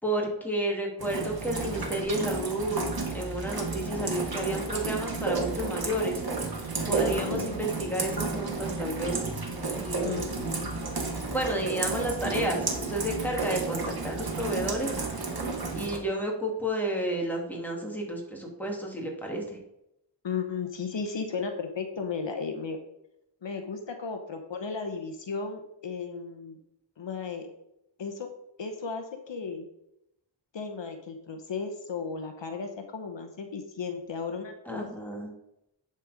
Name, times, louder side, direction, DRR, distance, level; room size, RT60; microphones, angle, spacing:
voice 1, 0.0-2.8 3.1-6.2 6.9-9.2 9.6-10.2 11.3-14.9 15.7-19.6 34.7-35.3, right 1 dB, 5° left, -1 dB, 2.3 m, -31 dB
Rain, 1.0-16.0, right 3 dB, 50° right, 1.6 m, -32 dB
voice 2, 7.0-7.7 10.0-10.7 20.2-22.8 23.4-26.6 27.0-27.5 28.0-28.3 28.6-29.6 30.5-34.9, left 5 dB, 70° left, 5 dB, 1.0 m, -35 dB
10.5 x 4.5 x 4.9 m, 0.84 s
wide cardioid pair, 80°, 45 cm